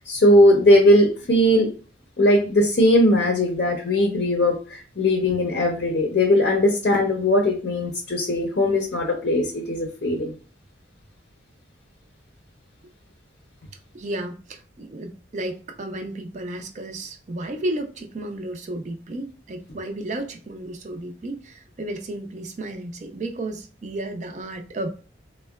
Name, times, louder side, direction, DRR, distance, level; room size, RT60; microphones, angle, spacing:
voice 1, 0.0-1.7 2.2-10.3, left 1 dB, 55° left, 0.5 m, -19 dB
voice 2, 13.9-24.9, right 1 dB, 35° right, 0.4 m, -33 dB
3.5 x 2.1 x 2.2 m
head